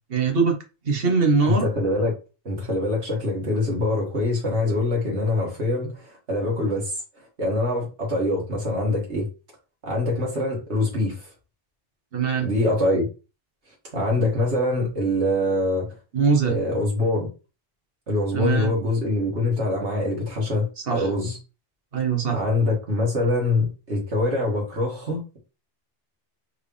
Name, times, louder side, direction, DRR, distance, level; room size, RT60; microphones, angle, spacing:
voice 1, 0.1-0.6 0.8-1.7 12.1-12.5 16.1-16.5 18.3-18.7 20.9-21.1 21.9-22.4, right 5 dB, 55° right, 1.5 m, -21 dB
voice 2, 1.4-2.1 2.4-6.9 7.2-9.3 9.8-11.3 12.4-13.1 13.9-15.9 16.4-17.3 18.1-21.4 22.3-25.4, left 2 dB, 70° right, 2.4 m, -24 dB
4.7 x 3.3 x 3.4 m
omnidirectional pair, 1.2 m